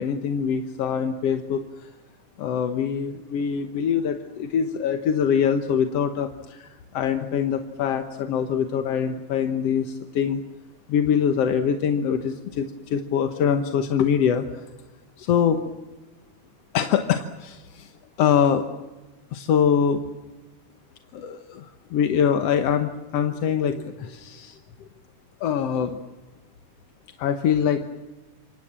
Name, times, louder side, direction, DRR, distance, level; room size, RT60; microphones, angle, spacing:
voice 1, 0.0-1.9 2.4-10.4 10.9-14.6 15.2-15.6 16.7-17.9 18.2-18.7 19.3-20.0 21.1-24.6 25.4-26.0 27.2-27.9, left 8 dB, 60° left, 7 dB, 2.0 m, -24 dB
28.0 x 24.0 x 7.5 m, 1.1 s
omnidirectional pair, 3.6 m